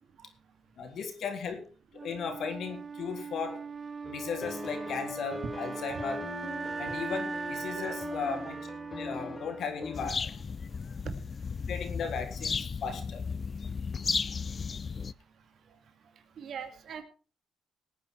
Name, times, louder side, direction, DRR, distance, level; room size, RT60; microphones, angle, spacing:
voice 1, 0.8-1.6 2.0-3.6 4.1-6.2 6.8-8.6 9.0-10.3 11.7-13.2, left 5 dB, 65° left, 5 dB, 3.7 m, -36 dB
Wind instrument woodwind instrument, 1.9-10.0, right 5 dB, 40° right, 0.6 m, -39 dB
sound 1, 4.0-10.1, left 4 dB, 25° left, 1.5 m, -41 dB
sound 2, 9.9-15.1, left 5 dB, 40° left, 0.6 m, -34 dB
voice 2, 16.4-17.0, right 7 dB, 65° right, 7 dB, 2.6 m, -42 dB
18.5 x 9.4 x 4.7 m, 0.39 s
cardioid pair, 90°, 0 cm